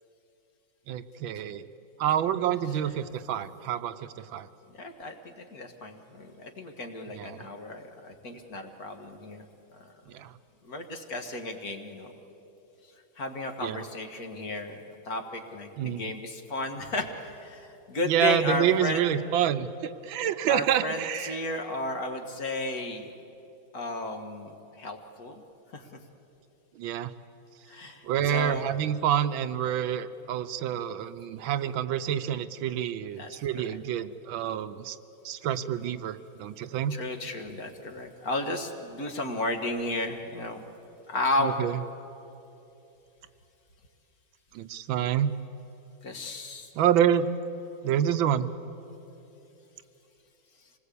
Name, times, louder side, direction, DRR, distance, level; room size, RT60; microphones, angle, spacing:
voice 1, 0.9-1.7 2.0-4.5 7.1-7.5 10.1-10.3 13.6-13.8 15.8-16.0 18.0-21.4 26.8-27.1 28.0-35.0 35.2-36.9 41.4-41.8 44.5-45.3 46.7-47.3 47.8-48.5, right 10 dB, 80° right, 11 dB, 1.5 m, -27 dB
voice 2, 4.8-9.5 9.7-9.8 10.6-12.1 13.2-19.0 20.5-23.1 23.7-25.4 25.7-25.9 27.7-28.7 33.1-33.8 36.9-40.7 41.1-41.6 46.0-46.7, left 2 dB, 50° left, 5 dB, 1.9 m, -33 dB
26.5 x 19.5 x 8.4 m, 3.0 s
omnidirectional pair, 2.2 m